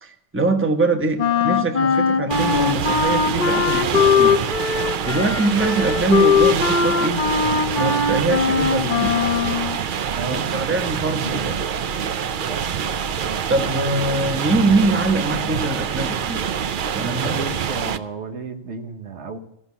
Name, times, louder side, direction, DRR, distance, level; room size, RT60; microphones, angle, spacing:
voice 1, 0.0-4.3 5.0-7.2 7.8-9.1 10.2-11.6 13.5-16.4 16.9-17.4, right 3 dB, 10° right, 6 dB, 1.0 m, -23 dB
Wind instrument woodwind instrument, 1.2-9.8, left 6 dB, 45° left, 1.0 m, -20 dB
sound 1, 2.3-18.0, right 7 dB, 55° right, 0.6 m, -26 dB
sound 2, 5.0-10.3, right 1 dB, 30° right, 1.9 m, -39 dB
voice 2, 10.1-10.5 12.5-12.6 17.0-19.4, right 4 dB, 70° right, 8 dB, 1.3 m, -32 dB
15.0 x 6.1 x 8.2 m, 0.88 s
omnidirectional pair, 1.2 m